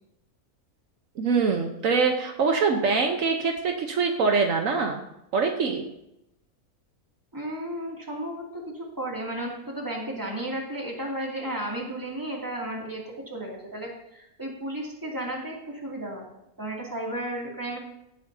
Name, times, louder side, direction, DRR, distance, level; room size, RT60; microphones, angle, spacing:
voice 1, 1.2-5.0 5.3-5.8, right 4 dB, 70° right, 3 dB, 1.3 m, -24 dB
voice 2, 7.3-16.3 16.6-17.8, right 1 dB, 15° right, -3 dB, 2.5 m, -34 dB
17.0 x 9.1 x 2.7 m, 0.83 s
omnidirectional pair, 1.5 m